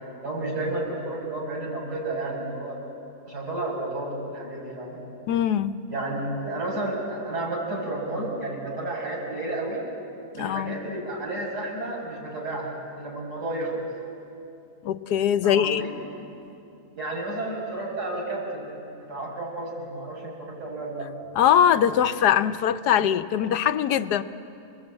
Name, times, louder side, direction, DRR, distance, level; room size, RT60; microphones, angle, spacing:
voice 1, 0.0-2.8 3.3-5.0 5.9-9.8 10.3-13.9 15.4-15.9 16.9-18.7 19.0-21.1, right 2 dB, 90° right, -3 dB, 6.9 m, -31 dB
voice 2, 5.3-5.7 10.3-10.7 14.8-15.8 21.4-24.2, left 9 dB, 80° left, 11 dB, 1.3 m, -22 dB
29.5 x 20.5 x 8.9 m, 2.7 s
omnidirectional pair, 1.7 m